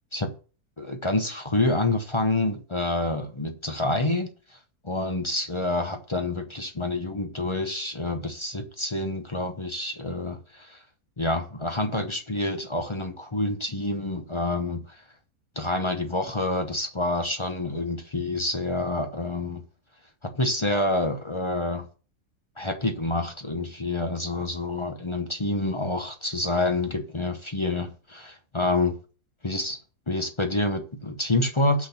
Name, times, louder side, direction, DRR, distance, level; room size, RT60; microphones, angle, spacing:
voice 1, 0.8-4.3 4.8-10.8 11.2-15.0 15.6-19.6 20.3-21.8 22.6-28.9 29.4-29.8 30.1-31.9, left 2 dB, 25° left, 0.6 m, -27 dB
6.2 x 5.3 x 5.8 m
omnidirectional pair, 1.7 m